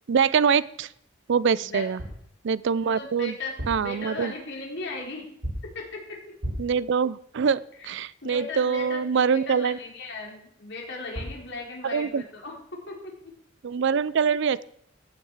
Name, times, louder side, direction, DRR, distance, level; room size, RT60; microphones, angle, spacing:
voice 1, 0.1-0.9 1.3-2.0 2.4-3.3 3.7-4.3 6.6-9.8 11.8-12.2 13.6-14.6, right 6 dB, 65° right, 20 dB, 0.4 m, -24 dB
voice 2, 1.5-1.8 2.8-5.3 5.7-6.2 7.8-7.9 8.2-12.5 12.9-13.3, left 2 dB, 65° left, -1 dB, 4.0 m, -37 dB
sound 1, 2.0-2.3 3.4-4.0 5.4-5.8 6.4-6.8 10.8-10.9 11.1-11.5, equal, 85° right, 6.0 m, -34 dB
15.5 x 8.7 x 4.8 m, 0.73 s
head